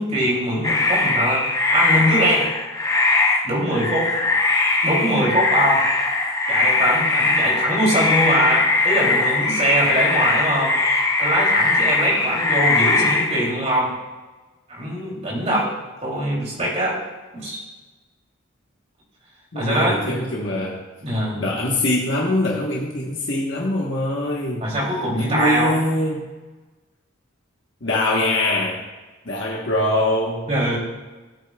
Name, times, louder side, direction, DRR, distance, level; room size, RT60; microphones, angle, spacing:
voice 1, 0.0-1.4 1.7-2.5 3.4-4.1 4.8-5.8 6.5-13.9 14.7-15.7 16.0-17.0 17.3-17.6 19.5-20.2 21.0-21.5 24.6-25.8 30.5-30.8, equal, 30° right, -3 dB, 2.9 m, -22 dB
sound 1, 0.6-13.5, left 3 dB, 15° left, 0.6 m, -20 dB
voice 2, 19.5-20.8 21.4-24.7 25.2-26.3 27.8-28.8 29.3-30.5, left 1 dB, 60° left, -3 dB, 1.2 m, -23 dB
16.0 x 8.3 x 2.3 m, 1.2 s
head